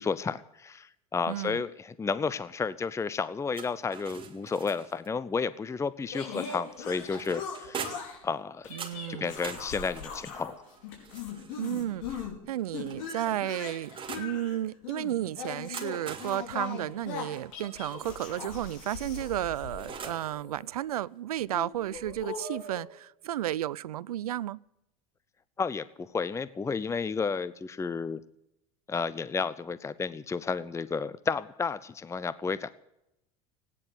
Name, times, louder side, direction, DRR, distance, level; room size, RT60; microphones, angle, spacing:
voice 1, 0.0-7.9 8.2-8.7 9.1-10.5 25.6-28.2 28.9-32.7, left 5 dB, 15° left, 16 dB, 0.7 m, -32 dB
voice 2, 1.3-1.6 8.7-9.3 11.6-24.6, right 13 dB, 85° right, 23 dB, 0.5 m, -33 dB
sound 1, 3.5-5.1 6.4-8.2 8.8-11.7 12.5-14.4 15.5-18.0 19.1-20.3, right 6 dB, 30° right, 3.1 m, -44 dB
sound 2, 6.1-8.2 8.6-10.5 10.8-12.3 12.7-20.7 21.4-22.8, left 6 dB, 65° left, 4.7 m, -40 dB
16.0 x 10.0 x 8.1 m, 0.84 s
hypercardioid pair, 85°, 19 cm